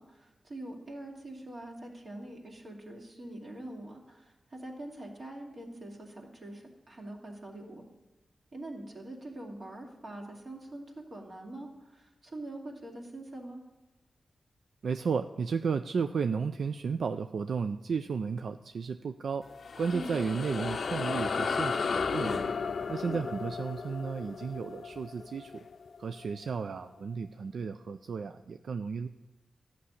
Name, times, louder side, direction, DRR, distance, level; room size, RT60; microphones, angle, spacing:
voice 1, 0.0-7.8 8.5-13.6 19.9-20.1 23.0-23.3, right 1 dB, 50° right, 0 dB, 2.7 m, -44 dB
voice 2, 14.8-19.5 19.8-22.5 22.9-25.6 26.0-29.1, right 5 dB, 80° right, 9 dB, 0.4 m, -33 dB
sound 1, 19.4-26.2, left 5 dB, 65° left, 0.5 m, -34 dB
13.0 x 6.0 x 9.6 m, 1.1 s
wide cardioid pair, 100°, 0 cm